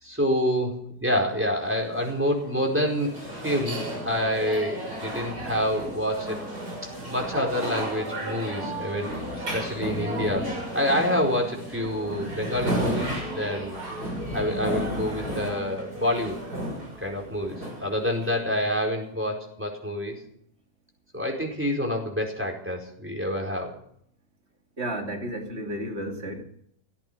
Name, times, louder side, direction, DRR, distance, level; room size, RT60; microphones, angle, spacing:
voice 1, 0.0-6.4 7.0-13.7 14.3-16.4 17.0-20.2 21.1-23.7, equal, 5° right, 4.7 m, -27 dB
sound 1, 1.7-18.7, right 1 dB, 80° right, 7.0 m, -33 dB
voice 2, 24.8-26.4, right 1 dB, 40° right, 2.9 m, -32 dB
16.5 x 14.5 x 5.7 m
omnidirectional pair, 1.7 m